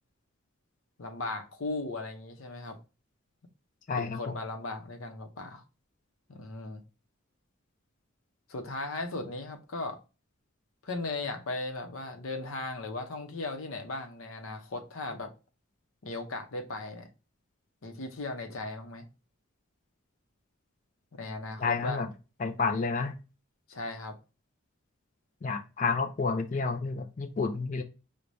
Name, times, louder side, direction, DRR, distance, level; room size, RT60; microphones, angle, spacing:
voice 1, 1.0-2.8 3.9-5.6 6.3-6.8 8.5-10.0 10.8-15.3 16.0-17.1 17.8-19.1 21.1-22.0 23.7-24.1, left 2 dB, 70° left, 5 dB, 0.7 m, -37 dB
voice 2, 3.9-4.3 21.6-22.1 22.4-23.1 25.4-27.8, left 4 dB, 35° left, 6 dB, 0.4 m, -30 dB
4.6 x 2.1 x 2.6 m, 0.31 s
head